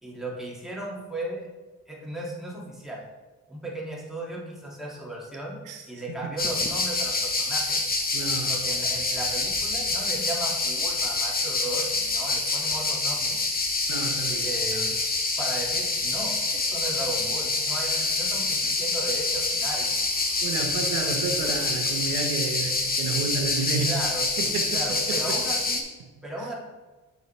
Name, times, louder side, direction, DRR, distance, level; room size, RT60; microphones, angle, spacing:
voice 1, 0.0-1.5 1.9-3.0 3.5-5.6 5.9-7.8 8.5-13.4 14.4-15.0 15.4-20.0 23.9-24.3 24.7-25.8 26.2-26.6, right 1 dB, ahead, -5 dB, 2.2 m, -36 dB
voice 2, 5.6-6.3 8.1-8.7 13.9-14.9 17.7-18.1 20.4-24.0 24.4-25.4 26.0-26.1 26.4-26.5, right 4 dB, 90° right, 3 dB, 1.0 m, -32 dB
sound 1, 6.4-25.8, left 3 dB, 30° left, 1.2 m, -26 dB
6.8 x 6.5 x 3.2 m, 1.2 s
cardioid pair, 90°, 30 cm